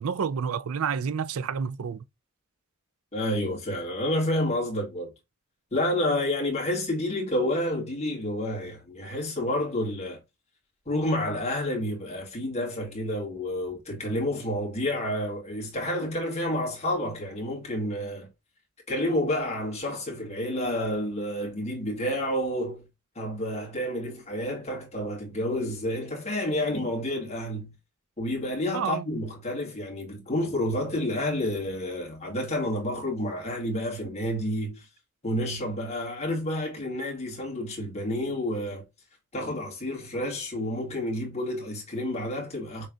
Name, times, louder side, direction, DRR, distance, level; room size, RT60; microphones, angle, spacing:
voice 1, 0.0-2.0 28.7-29.0, right 6 dB, 75° right, 0.4 m, -29 dB
voice 2, 3.1-5.1 5.7-10.2 10.9-18.3 18.9-22.9 23.2-27.7 28.2-34.9 35.2-38.8 39.3-42.9, left 1 dB, 30° left, 2.0 m, -29 dB
6.4 x 3.3 x 2.4 m
head